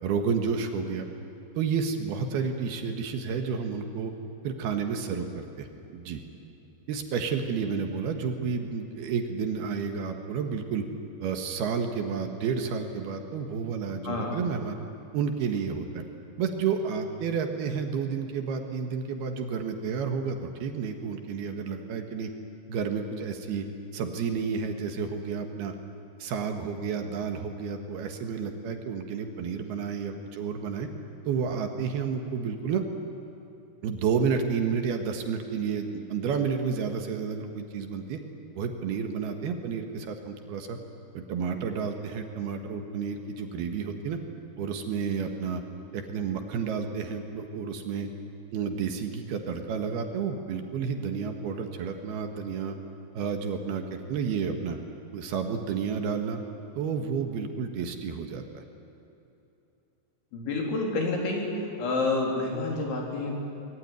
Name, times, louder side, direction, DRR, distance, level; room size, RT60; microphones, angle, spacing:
voice 1, 0.0-1.1 1.6-4.1 4.4-6.2 6.9-10.8 11.2-14.8 15.1-16.0 16.4-22.3 22.7-23.7 23.9-25.7 26.2-30.9 31.3-32.8 33.8-38.2 38.6-40.8 41.1-44.2 44.6-45.6 45.9-48.1 48.5-52.8 53.1-54.8 55.1-56.4 56.8-58.4, right 6 dB, 65° right, 5 dB, 3.2 m, -31 dB
voice 2, 14.0-14.4 60.3-63.4, left 3 dB, 90° left, -1 dB, 6.3 m, -29 dB
24.0 x 21.5 x 9.6 m, 2.9 s
omnidirectional pair, 5.2 m